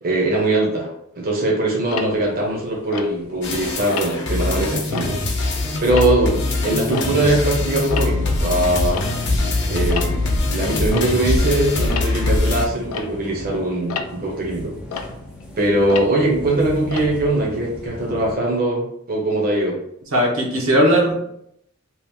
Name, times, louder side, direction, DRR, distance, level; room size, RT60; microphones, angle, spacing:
voice 1, 0.0-5.2 5.8-9.0 9.7-15.1 15.6-19.8, right 1 dB, 45° right, -3 dB, 0.8 m, -21 dB
Tick-tock, 1.9-3.5 3.9-4.3 4.8-7.5 7.8-17.9, left 5 dB, 90° left, 0.4 m, -33 dB
sound 1, 3.4-12.7, left 2 dB, 55° left, 0.7 m, -22 dB
sound 2, 6.2-18.3, equal, 5° right, 0.4 m, -38 dB
voice 2, 20.1-21.2, equal, 80° right, -2 dB, 1.0 m, -17 dB
3.0 x 2.4 x 3.5 m, 0.74 s
head